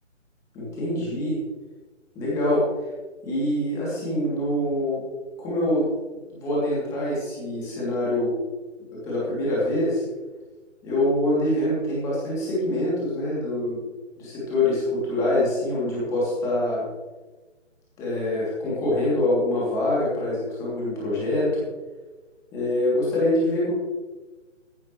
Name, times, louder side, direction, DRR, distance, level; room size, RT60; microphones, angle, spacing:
voice 1, 0.5-1.4 2.1-2.7 3.2-5.0 5.4-5.9 6.1-8.3 9.0-10.0 10.8-13.8 14.2-16.9 18.0-21.6 22.5-23.7, left 1 dB, 10° left, -7 dB, 2.9 m, -25 dB
14.0 x 12.0 x 3.2 m, 1.2 s
figure-of-eight pair, 150°, 37 cm